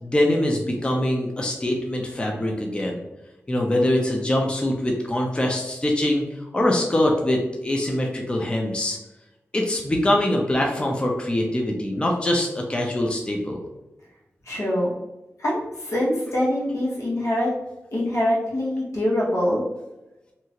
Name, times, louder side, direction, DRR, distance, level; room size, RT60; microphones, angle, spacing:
voice 1, 0.0-3.0 3.5-6.2 6.5-9.0 9.5-13.6, left 1 dB, 20° left, 0 dB, 0.4 m, -23 dB
voice 2, 14.4-14.9 15.4-17.5 17.9-19.6, left 1 dB, 85° left, -6 dB, 1.2 m, -24 dB
2.8 x 2.4 x 2.8 m, 0.98 s
wide cardioid pair, 90°, 5 cm